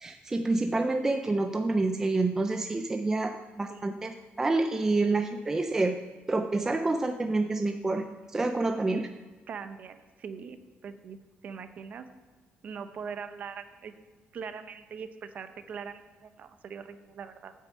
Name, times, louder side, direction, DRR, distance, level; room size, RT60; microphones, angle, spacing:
voice 1, 0.0-6.0 6.3-8.1 8.3-9.1, right 2 dB, 15° right, 6 dB, 0.4 m, -28 dB
voice 2, 9.5-12.1 12.6-13.9 14.3-17.5, right 6 dB, 40° right, 9 dB, 0.7 m, -42 dB
9.1 x 6.5 x 7.6 m, 1.3 s
cardioid pair, 180°, 4 cm